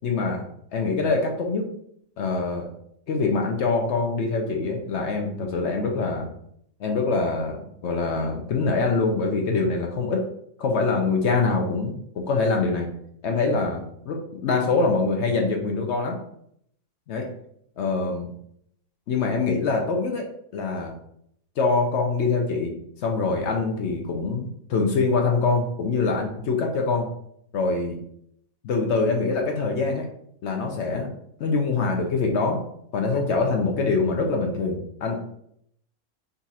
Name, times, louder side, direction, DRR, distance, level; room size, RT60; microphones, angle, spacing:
voice 1, 0.0-0.4 0.7-1.7 2.2-2.7 3.1-6.3 6.8-10.2 10.6-12.9 13.2-14.2 14.4-16.2 17.1-17.3 17.8-18.3 19.1-20.3 20.5-20.9 21.6-22.7 23.0-27.1 27.5-28.0 28.6-30.1 30.4-31.1 31.4-32.6 32.9-35.2, left 3 dB, 65° left, 2 dB, 0.8 m, -24 dB
3.9 x 2.4 x 4.0 m, 0.70 s
omnidirectional pair, 1.5 m